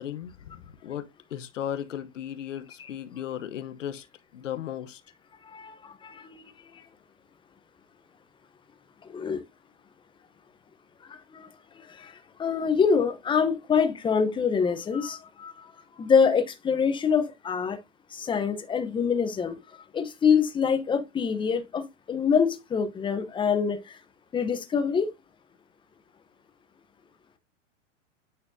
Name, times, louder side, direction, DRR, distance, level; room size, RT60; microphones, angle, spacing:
voice 1, 0.0-4.0 4.3-5.0, left 10 dB, 85° left, 1.0 m, -36 dB
voice 2, 5.4-6.4 9.0-9.4 11.1-11.5 11.8-15.7 16.0-17.8 18.1-19.6 19.9-23.9 24.3-25.1, left 6 dB, 15° left, 0.8 m, -25 dB
9.0 x 4.2 x 2.7 m
hypercardioid pair, 125°, 36 cm